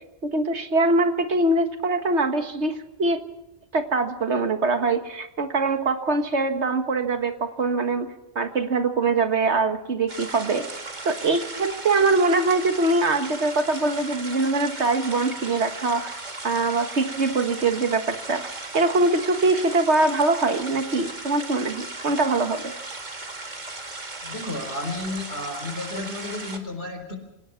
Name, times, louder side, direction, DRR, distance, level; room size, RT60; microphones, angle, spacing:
voice 1, 0.2-3.2 3.7-8.1 8.4-10.7 11.0-16.1 16.4-22.7, right 3 dB, 80° right, 7 dB, 1.9 m, -23 dB
sound 1, 10.1-26.6, right 2 dB, 40° right, 2.0 m, -37 dB
voice 2, 24.2-27.2, left 2 dB, 70° left, 5 dB, 4.5 m, -32 dB
27.0 x 17.5 x 5.9 m, 0.86 s
omnidirectional pair, 1.1 m